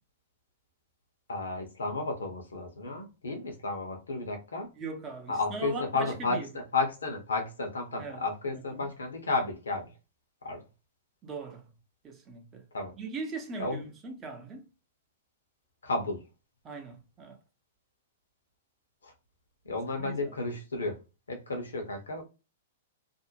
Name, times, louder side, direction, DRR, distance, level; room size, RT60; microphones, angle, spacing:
voice 1, 1.3-4.7 5.3-9.9 10.4-10.6 12.7-12.9 13.6-13.8 15.8-16.2 19.0-19.1 19.6-21.0 21.3-22.2, left 3 dB, 80° left, 0.9 m, -32 dB
voice 2, 4.8-6.5 8.0-8.2 8.5-8.9 11.2-11.7 12.0-12.6 13.0-14.6 16.6-17.4 19.9-20.3, right 4 dB, 25° right, 0.7 m, -40 dB
2.6 x 2.1 x 2.8 m
hypercardioid pair, 110°, 0 cm